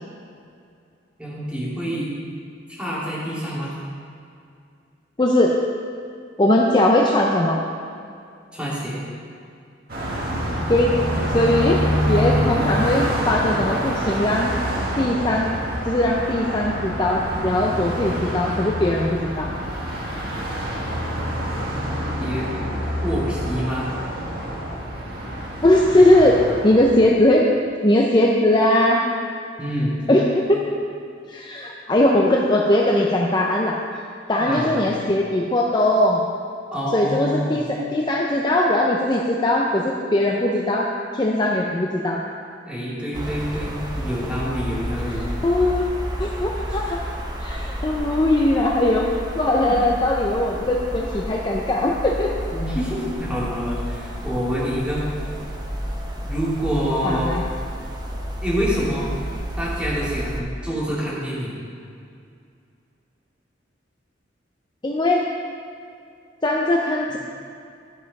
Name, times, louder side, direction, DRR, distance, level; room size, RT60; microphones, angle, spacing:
voice 1, 1.2-2.1 2.7-3.7 8.5-9.0 22.2-22.4 23.0-23.9 29.6-29.9 34.4-34.8 36.7-37.6 42.6-45.2 46.7-46.8 49.6-49.7 52.5-55.0 56.2-57.3 58.4-59.1 59.6-61.6 67.1-67.2, equal, 5° right, -8 dB, 2.5 m, -26 dB
voice 2, 5.2-5.6 6.4-7.6 10.7-10.9 11.3-11.8 12.1-14.5 15.0-15.5 15.9-19.5 25.6-27.4 27.8-29.0 30.1-30.6 31.3-33.8 34.3-36.2 36.9-42.2 45.4-45.9 46.2-47.0 47.4-49.1 49.3-52.3 57.0-57.4 64.8-65.2 66.4-67.2, left 1 dB, 25° left, -2 dB, 0.6 m, -19 dB
Car passing by, 9.9-27.1, equal, 55° right, 1.8 m, -26 dB
sound 1, 43.1-60.4, equal, 25° right, 0.9 m, -31 dB
12.0 x 5.6 x 5.3 m, 2.4 s
head